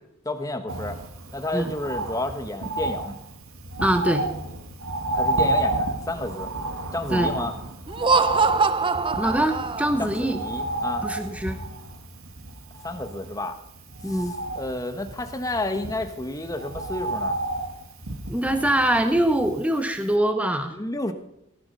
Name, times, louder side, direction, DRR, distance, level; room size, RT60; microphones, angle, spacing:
voice 1, 0.2-1.0 1.3-3.2 5.1-6.5 6.9-7.5 10.0-11.1 12.8-13.6 14.0-17.4 20.7-21.1, left 1 dB, 15° left, 7 dB, 1.2 m, -31 dB
Bird, 0.7-19.8 20.1-20.2, right 2 dB, 90° right, 1.9 m, -31 dB
voice 2, 3.8-4.3 7.1-7.3 9.2-10.4 11.0-11.6 14.0-14.3 18.3-20.7, right 1 dB, 5° right, 7 dB, 0.8 m, -23 dB
Laughter, 7.9-10.2, right 4 dB, 25° right, 0.5 m, -23 dB
17.5 x 11.0 x 5.4 m, 0.81 s
head